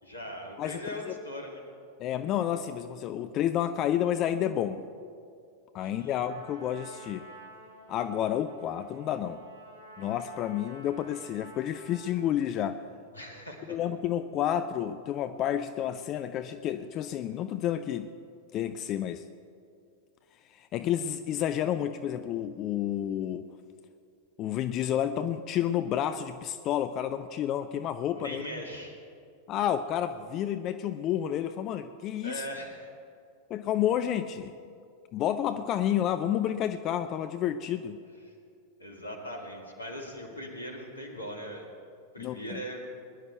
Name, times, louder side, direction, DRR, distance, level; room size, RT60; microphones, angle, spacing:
voice 1, 0.0-1.6 5.8-6.2 13.1-13.8 28.1-29.0 32.2-32.9 38.8-41.7 42.1-42.8, equal, 80° left, 1 dB, 2.2 m, -40 dB
voice 2, 0.6-1.1 2.0-4.8 5.7-7.2 7.9-9.4 10.0-12.8 13.7-18.1 18.5-19.2 20.5-23.5 24.4-28.5 29.5-32.4 33.5-34.5 35.1-38.0 42.2-42.6, left 10 dB, 35° left, 10 dB, 0.5 m, -30 dB
Trumpet, 6.1-12.4, right 1 dB, 65° right, 2.4 m, -50 dB
21.0 x 11.0 x 4.5 m, 2.3 s
figure-of-eight pair, 90°, 0 cm